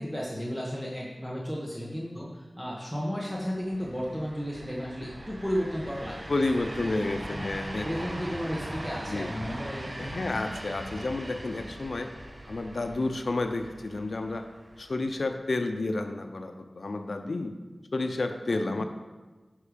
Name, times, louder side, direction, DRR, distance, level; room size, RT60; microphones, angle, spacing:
voice 1, 0.0-6.2 6.8-7.0 7.8-10.2 18.5-18.8, equal, 5° right, -4 dB, 1.3 m, -34 dB
sound 1, 3.4-15.3, right 1 dB, 30° right, 0.9 m, -41 dB
voice 2, 6.3-8.0 9.1-9.3 10.0-12.2 12.5-14.5 14.8-17.5 17.9-18.8, left 2 dB, 70° left, 7 dB, 0.7 m, -30 dB
9.8 x 5.5 x 5.1 m, 1.3 s
wide cardioid pair, 75°, 0 cm